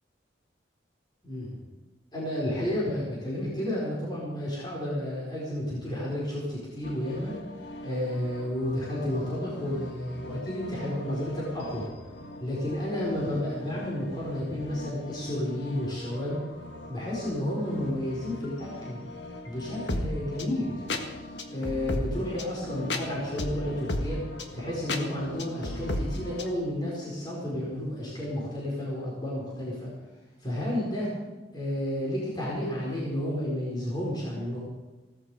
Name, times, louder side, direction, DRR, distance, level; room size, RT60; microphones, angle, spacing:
voice 1, 2.1-7.3 7.8-11.9 12.4-16.4 16.9-19.0 19.4-20.8 21.5-24.2 24.5-29.9 30.4-31.1 31.5-34.6, left 1 dB, 25° left, -5 dB, 4.6 m, -31 dB
sound 1, 6.8-26.5, left 1 dB, 65° left, 1.7 m, -38 dB
16.5 x 14.5 x 4.9 m, 1.2 s
head